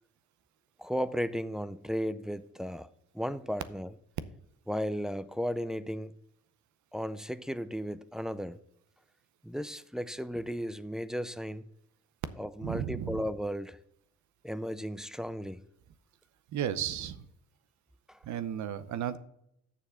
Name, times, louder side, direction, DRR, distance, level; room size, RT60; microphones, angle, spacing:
voice 1, 0.8-2.9 3.1-3.9 4.7-6.1 6.9-8.6 9.4-11.6 12.4-13.8 14.4-15.6 18.1-18.2, equal, ahead, 0.4 m, -35 dB
voice 2, 12.6-13.2 16.5-17.3 18.2-19.2, right 9 dB, 70° right, 0.8 m, -34 dB
7.2 x 6.7 x 5.7 m
cardioid pair, 90°, 30 cm